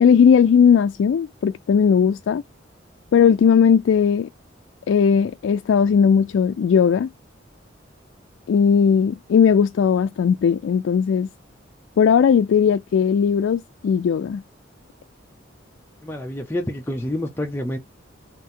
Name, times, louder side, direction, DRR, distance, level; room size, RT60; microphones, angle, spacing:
voice 1, 0.0-2.4 3.1-4.3 4.9-7.1 8.5-11.3 12.0-14.4, left 7 dB, 85° left, 0.3 m, -17 dB
voice 2, 16.0-17.8, left 1 dB, 10° left, 0.5 m, -28 dB
4.2 x 2.6 x 3.7 m
head